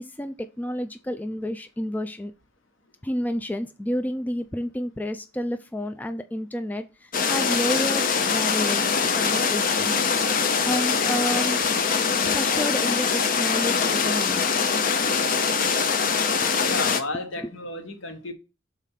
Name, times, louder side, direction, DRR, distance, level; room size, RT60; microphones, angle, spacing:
voice 1, 0.0-2.3 3.0-8.8 9.1-10.0 10.7-11.6 12.2-14.5 16.4-16.5 17.4-17.5, equal, 10° left, 0.3 m, -30 dB
sound 1, 7.1-17.0, left 5 dB, 45° left, 0.6 m, -23 dB
voice 2, 16.6-18.3, left 2 dB, 70° left, 1.2 m, -33 dB
5.1 x 4.1 x 5.6 m
head